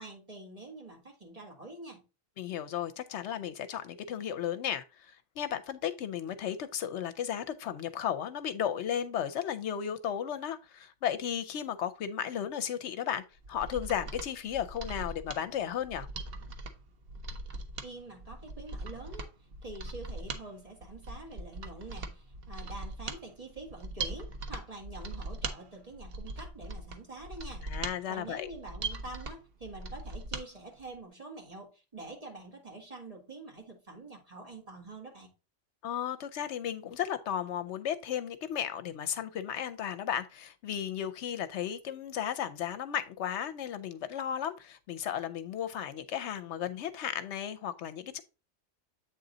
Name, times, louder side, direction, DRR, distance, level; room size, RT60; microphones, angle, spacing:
voice 1, 0.0-2.0 17.8-19.3 19.6-27.7 28.1-35.3, right 2 dB, 30° right, 1.9 m, -46 dB
voice 2, 2.4-16.1 27.6-28.5 35.8-48.2, left 9 dB, 75° left, 0.9 m, -34 dB
Mechanisms, 13.4-30.5 30.8-30.9, right 3 dB, 55° right, 1.0 m, -41 dB
8.1 x 3.8 x 3.9 m
omnidirectional pair, 1.2 m